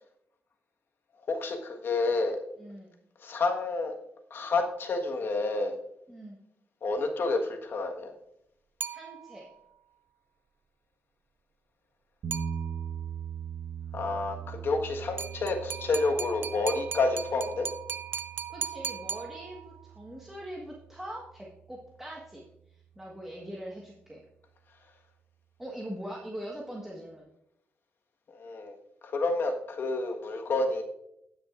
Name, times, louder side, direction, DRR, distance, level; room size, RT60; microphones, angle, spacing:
voice 1, 1.3-2.4 3.2-3.9 4.3-5.7 6.8-8.1 13.9-17.7 28.4-28.7 29.0-30.8, left 3 dB, 60° left, 3 dB, 1.4 m, -29 dB
voice 2, 2.6-2.9 6.1-6.4 8.9-9.5 18.5-22.4 22.9-24.2 25.6-27.3, right 1 dB, 10° right, -3 dB, 1.4 m, -42 dB
sound 1, 8.8-9.6 12.3-13.1 15.2-19.9, right 7 dB, 55° right, 0.5 m, -38 dB
sound 2, 12.2-22.3, right 7 dB, 85° right, 1.2 m, -41 dB
18.0 x 6.1 x 2.5 m, 0.80 s
cardioid pair, 110°, 4 cm